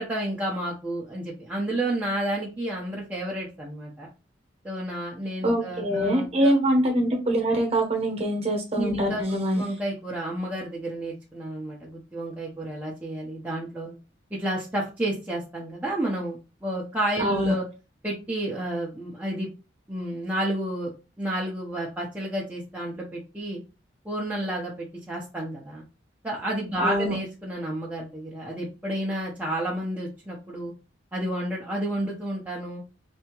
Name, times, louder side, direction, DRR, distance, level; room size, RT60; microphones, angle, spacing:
voice 1, 0.0-4.1 4.6-6.5 8.7-9.2 9.6-14.0 14.3-17.7 18.0-19.5 19.9-20.9 21.2-23.6 24.0-25.8 26.2-30.7 31.1-32.8, right 1 dB, 10° right, -5 dB, 0.6 m, -31 dB
voice 2, 5.4-9.6 17.2-17.5 26.8-27.2, right 1 dB, 30° right, 2 dB, 1.0 m, -24 dB
3.4 x 2.7 x 2.9 m, 0.31 s
head